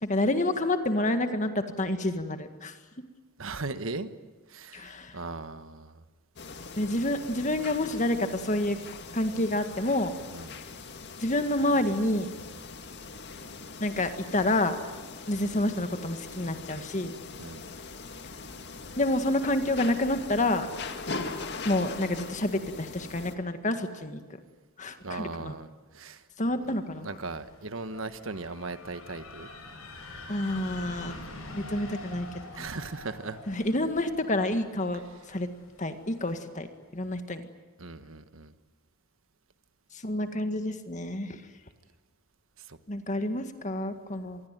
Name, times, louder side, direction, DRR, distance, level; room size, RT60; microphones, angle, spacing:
voice 1, 0.0-2.8 4.7-5.2 6.8-8.8 9.1-10.1 11.2-12.3 13.8-14.8 15.3-17.1 19.0-20.7 21.6-24.2 24.8-25.5 26.4-27.1 30.3-31.2 31.5-32.7 33.5-35.0 35.3-35.5 35.8-36.7 36.9-37.5 40.0-41.4 42.9-44.4, left 1 dB, 35° left, 8 dB, 1.9 m, -28 dB
voice 2, 3.4-4.1 4.5-6.0 10.3-10.6 17.4-17.7 25.0-26.2 27.0-29.5 31.2-31.3 32.5-33.4 37.8-38.5 42.6-42.8, right 3 dB, 65° right, 11 dB, 1.4 m, -38 dB
sound 1, 6.4-23.4, left 4 dB, 50° left, 2.0 m, -41 dB
sound 2, 26.6-36.4, left 2 dB, 80° left, 7.2 m, -46 dB
26.0 x 21.0 x 9.3 m, 1.3 s
head